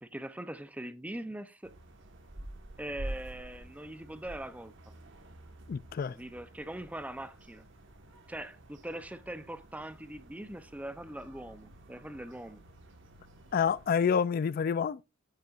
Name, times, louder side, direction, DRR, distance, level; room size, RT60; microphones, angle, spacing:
voice 1, 0.0-1.7 2.8-4.7 6.1-7.6 8.3-12.6, right 1 dB, 5° right, 0.5 m, -42 dB
sound 1, 1.6-13.9, right 1 dB, 65° right, 1.4 m, -49 dB
voice 2, 5.7-6.2 13.5-15.0, left 7 dB, 45° left, 0.3 m, -28 dB
9.0 x 8.4 x 2.4 m
head